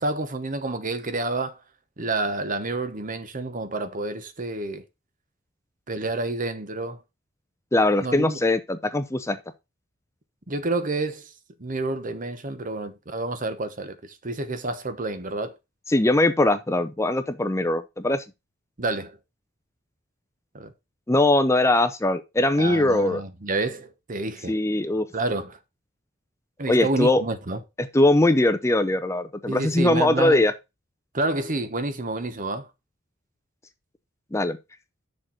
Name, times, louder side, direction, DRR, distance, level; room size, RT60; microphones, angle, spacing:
voice 1, 0.0-1.6 2.0-4.8 5.9-7.0 8.0-8.4 10.5-11.3 11.6-15.5 18.8-19.2 20.5-20.7 22.6-24.6 25.1-25.6 26.6-27.6 29.5-30.4 31.1-32.7, right 2 dB, 40° right, 1.0 m, -29 dB
voice 2, 7.7-9.4 15.9-18.2 21.1-23.2 24.5-25.1 26.7-27.2 27.9-30.5 34.3-34.6, left 2 dB, 15° left, 0.6 m, -21 dB
6.6 x 4.3 x 6.1 m
head